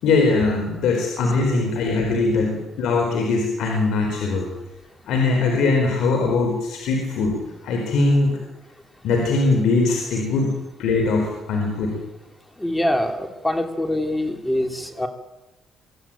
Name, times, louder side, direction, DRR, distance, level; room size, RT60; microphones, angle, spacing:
voice 1, 0.0-4.5 5.1-7.4 7.6-8.4 9.0-10.5 10.8-12.0, left 3 dB, 80° left, 2 dB, 4.4 m, -21 dB
voice 2, 12.6-15.1, left 1 dB, 10° left, 6 dB, 3.0 m, -24 dB
23.5 x 14.0 x 8.8 m, 1.0 s
cardioid pair, 90°, 0 cm